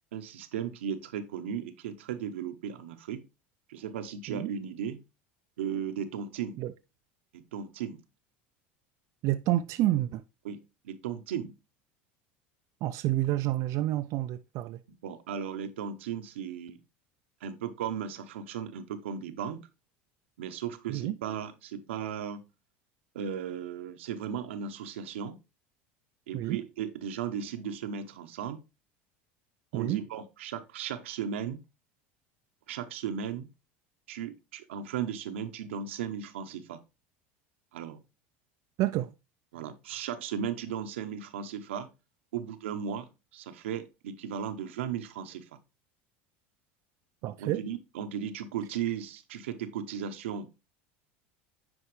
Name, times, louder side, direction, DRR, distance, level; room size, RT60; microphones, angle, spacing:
voice 1, 0.1-3.2 3.7-5.0 5.6-6.6 7.3-8.0 10.4-10.6 10.8-11.5 15.0-16.8 17.4-19.7 20.4-22.4 23.1-25.4 26.3-28.6 29.7-31.6 32.7-33.5 34.1-36.8 37.7-38.0 39.5-41.9 42.3-45.5 47.2-50.7, right 8 dB, 90° right, 0.8 m, -36 dB
voice 2, 9.2-10.2 12.8-14.8 20.9-21.2 26.3-26.6 29.7-30.0 38.8-39.1 47.2-47.6, right 15 dB, 55° right, 0.4 m, -29 dB
9.6 x 4.5 x 3.2 m
supercardioid pair, 100°, 6 cm